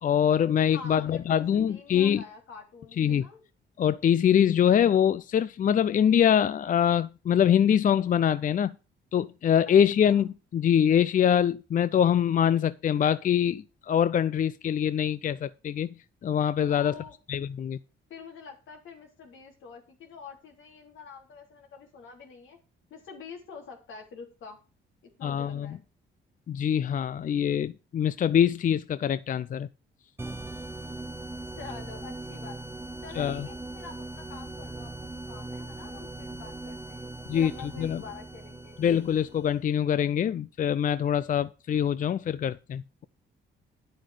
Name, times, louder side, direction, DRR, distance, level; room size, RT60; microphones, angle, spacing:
voice 1, 0.0-2.2 3.0-3.2 3.8-8.7 9.1-15.9 16.2-16.9 17.3-17.8 25.2-25.8 26.5-29.7 33.2-33.5 37.3-37.5 37.8-38.0 38.8-43.0, left 9 dB, 40° left, 0.5 m, -24 dB
voice 2, 0.7-3.4 10.0-10.2 16.7-17.1 18.1-22.6 22.9-24.6 25.0-25.8 31.6-32.6 33.0-38.8, left 5 dB, 80° left, 3.5 m, -46 dB
sound 1, 30.2-39.6, right 2 dB, 10° right, 0.7 m, -40 dB
10.0 x 7.8 x 5.0 m
cardioid pair, 90°, 20 cm